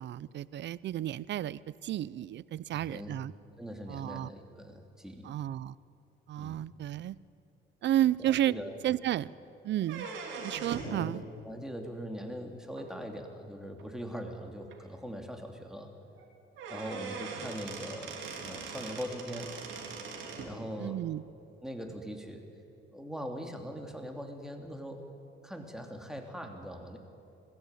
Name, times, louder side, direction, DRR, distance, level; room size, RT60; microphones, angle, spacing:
voice 1, 0.0-3.3 3.9-4.3 5.2-5.7 6.3-7.2 7.8-8.5 8.8-9.3 9.6-10.1 10.4-11.2 20.8-21.2, right 12 dB, 65° right, 20 dB, 0.5 m, -32 dB
voice 2, 2.7-3.1 3.6-5.3 6.4-6.7 8.2-8.8 10.9-15.9 16.7-19.6 20.4-21.0 21.6-22.4 22.9-25.0 25.4-27.0, equal, 5° right, 3 dB, 2.9 m, -41 dB
sound 1, 9.8-11.0 12.8-12.9 13.8-13.9 14.3-14.4 14.7-14.8 16.2-16.3 16.6-20.5, right 4 dB, 85° right, 3.4 m, -41 dB
21.0 x 15.5 x 9.2 m, 2.7 s
cardioid pair, 90°, 20 cm